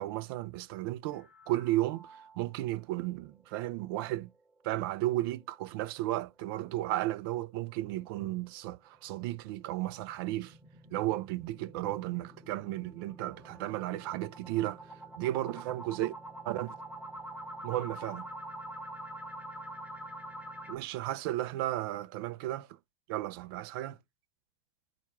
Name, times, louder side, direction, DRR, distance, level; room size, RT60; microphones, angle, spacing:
voice 1, 0.0-4.3 4.6-10.5 10.9-14.8 15.2-16.1 16.4-16.7 17.6-18.3 20.7-22.7 23.1-24.0, right 15 dB, 60° right, 0.6 m, -34 dB
sound 1, 1.1-2.6 3.0-3.1 3.5-3.6 4.0-4.1 8.9-20.8, right 1 dB, 10° right, 1.1 m, -46 dB
4.4 x 2.4 x 4.6 m
hypercardioid pair, 100°, 14 cm